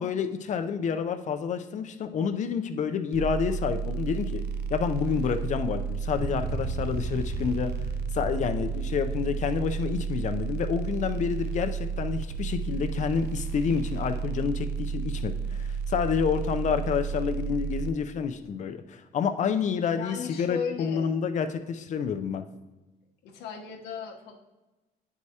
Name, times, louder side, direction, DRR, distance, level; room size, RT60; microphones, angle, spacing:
voice 1, 0.0-4.4 4.7-7.7 8.1-22.4, left 6 dB, 45° left, 8 dB, 0.5 m, -29 dB
sound 1, 3.1-17.9, right 6 dB, 70° right, 0.5 m, -32 dB
sound 2, 6.1-11.5, right 1 dB, 30° right, 1.4 m, -38 dB
voice 2, 19.9-21.1 23.2-24.4, left 6 dB, 85° left, 1 dB, 1.0 m, -36 dB
9.8 x 4.8 x 2.8 m, 1.1 s
cardioid pair, 110°, 17 cm